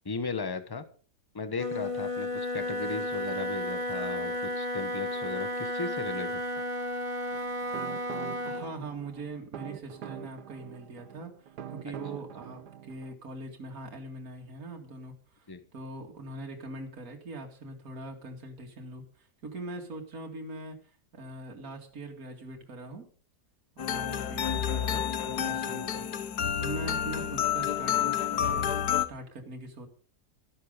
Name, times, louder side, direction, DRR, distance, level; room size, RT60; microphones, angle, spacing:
voice 1, 0.0-0.8 1.3-6.6 11.8-11.9 15.5-15.6, left 4 dB, 15° left, 10 dB, 1.1 m, -36 dB
Wind instrument woodwind instrument, 1.5-8.7, left 1 dB, 20° right, 1.3 m, -33 dB
sound 1, 7.3-13.1, right 9 dB, 75° right, 1.5 m, -44 dB
voice 2, 8.4-20.8 21.1-23.0 23.8-26.0 26.6-29.9, right 2 dB, 55° right, 2 dB, 2.6 m, -42 dB
sound 2, 23.8-29.1, left 9 dB, 70° left, 1.5 m, -29 dB
13.0 x 12.5 x 5.1 m, 0.42 s
omnidirectional pair, 1.8 m